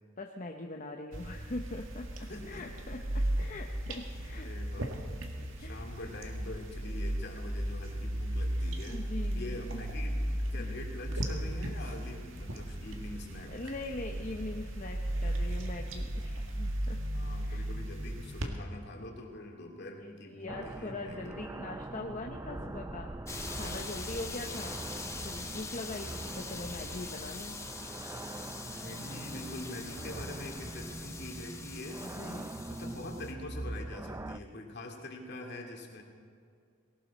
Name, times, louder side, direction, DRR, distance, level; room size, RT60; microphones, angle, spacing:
voice 1, 0.2-4.5 5.6-5.8 6.4-6.6 8.9-9.8 10.6-10.7 13.5-17.0 17.4-17.6 20.1-23.1 23.5-24.8 25.2-27.6 32.0-32.5, left 2 dB, 40° left, 2 dB, 0.9 m, -42 dB
sound 1, 1.1-18.5, right 1 dB, 85° right, 1.8 m, -35 dB
voice 2, 2.3-3.1 4.3-5.0 5.6-9.0 9.3-13.7 17.1-21.3 28.7-32.1 32.7-36.0, left 1 dB, 60° left, 1 dB, 2.5 m, -44 dB
sound 2, 20.5-34.4, right 2 dB, 15° right, 0.3 m, -42 dB
sound 3, 23.3-33.3, left 4 dB, 15° left, 1.0 m, -44 dB
19.0 x 18.0 x 4.2 m, 2.3 s
head